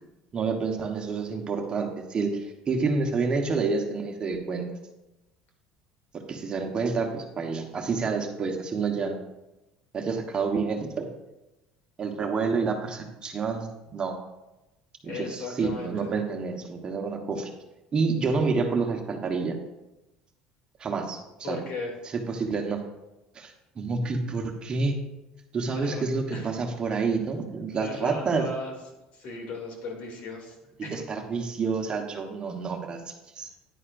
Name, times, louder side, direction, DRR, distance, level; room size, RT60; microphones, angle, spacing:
voice 1, 0.3-4.6 6.3-9.2 9.9-11.1 12.0-14.2 15.0-17.5 17.9-19.6 20.8-21.2 21.5-21.6 22.3-22.8 23.3-25.0 25.5-28.5 30.9-33.5, right 4 dB, 30° right, 3 dB, 1.2 m, -28 dB
voice 2, 15.0-16.1 21.4-21.9 25.7-26.0 26.3-26.5 26.9-27.1 27.7-28.7 29.1-31.0, left 3 dB, 65° left, 1 dB, 2.6 m, -37 dB
9.9 x 9.6 x 2.6 m, 0.98 s
supercardioid pair, 110°, 3 cm